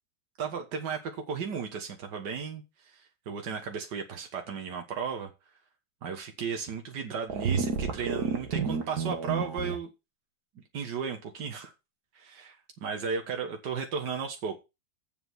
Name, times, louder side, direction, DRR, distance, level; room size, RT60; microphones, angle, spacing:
voice 1, 0.4-2.6 2.9-5.3 6.0-9.9 10.6-11.7 12.2-14.6, right 6 dB, 85° right, 2.0 m, -35 dB
sound 1, 7.3-9.7, right 5 dB, 65° right, 2.0 m, -30 dB
7.6 x 6.9 x 6.1 m
omnidirectional pair, 1.8 m